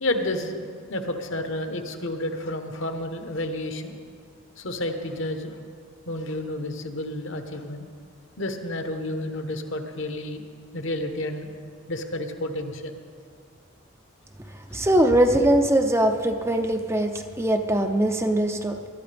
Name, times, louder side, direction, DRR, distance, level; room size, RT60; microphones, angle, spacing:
voice 1, 0.0-3.9 4.6-5.6 6.1-7.9 8.4-10.4 10.7-11.5 11.9-12.9, left 1 dB, 60° left, 6 dB, 1.0 m, -30 dB
voice 2, 14.7-18.8, right 1 dB, 10° right, 5 dB, 0.5 m, -21 dB
19.5 x 12.5 x 3.4 m, 2.1 s
head